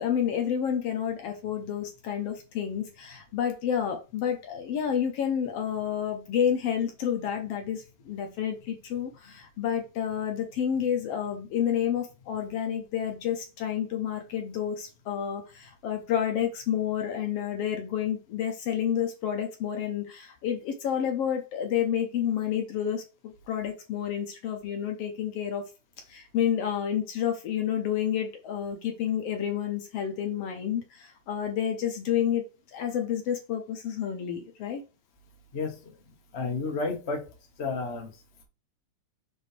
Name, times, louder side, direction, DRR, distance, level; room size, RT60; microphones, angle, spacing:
voice 1, 0.0-25.6 26.1-32.4 32.7-34.8, left 9 dB, 70° left, 4 dB, 1.7 m, -30 dB
voice 2, 35.5-35.9 36.3-37.3 37.6-38.1, left 3 dB, 40° left, 2 dB, 0.9 m, -31 dB
6.2 x 4.6 x 3.3 m, 0.30 s
omnidirectional pair, 3.3 m